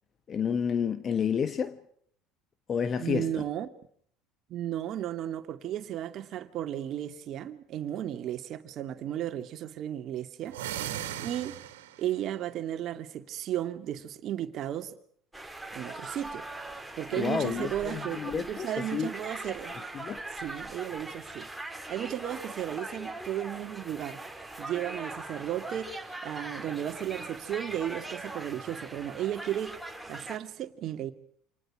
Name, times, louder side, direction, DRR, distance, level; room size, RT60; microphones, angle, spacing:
voice 1, 0.3-1.8 2.7-3.4 17.1-19.1 19.9-20.2, left 7 dB, 40° left, 1.4 m, -30 dB
voice 2, 3.0-3.7 4.5-10.6 11.2-11.6 12.0-14.9 15.7-16.4 17.0-19.9 20.4-21.5 21.9-24.2 24.6-26.0 26.2-29.8 30.1-31.1, right 11 dB, 50° right, 2.3 m, -34 dB
sound 1, 10.4-12.1, right 12 dB, 75° right, 2.6 m, -37 dB
sound 2, 15.3-30.4, right 2 dB, 5° right, 3.7 m, -41 dB
29.5 x 27.5 x 4.9 m
hypercardioid pair, 70°, 0 cm